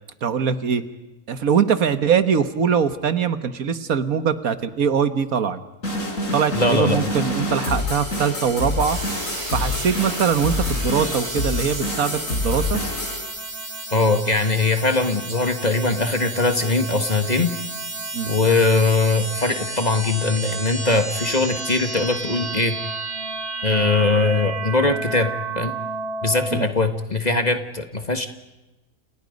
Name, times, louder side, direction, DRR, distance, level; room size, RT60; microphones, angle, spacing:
voice 1, 0.2-0.8 1.3-5.6 6.3-9.0 9.5-12.8 18.1-18.3 26.5-26.7, right 7 dB, 70° right, 11 dB, 1.7 m, -22 dB
sound 1, 5.8-13.2, left 2 dB, 60° left, 4.9 m, -26 dB
voice 2, 6.5-7.0 13.9-17.5 18.3-22.8 23.6-25.7 26.2-28.3, left 3 dB, 30° left, 7 dB, 1.7 m, -21 dB
sound 2, 8.9-26.7, right 3 dB, 45° right, 3.0 m, -32 dB
30.0 x 29.0 x 5.3 m, 1.0 s
omnidirectional pair, 1.5 m